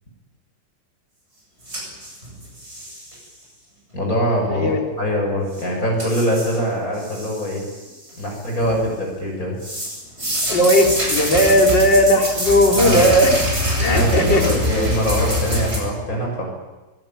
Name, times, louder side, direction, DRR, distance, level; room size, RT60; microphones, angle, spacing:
sound 1, 1.7-3.2 5.5-5.6 6.0-6.6 7.0-7.8 8.1-8.9 9.6-15.8, equal, 35° right, 8.0 m, -24 dB
voice 1, 3.9-7.6 8.2-9.6 12.8-13.1 13.8-16.4, equal, 50° left, 0 dB, 7.0 m, -23 dB
voice 2, 4.5-4.8 10.5-13.5 13.8-14.6, equal, 75° left, 1 dB, 4.2 m, -16 dB
24.0 x 21.5 x 9.1 m, 1.1 s
omnidirectional pair, 2.0 m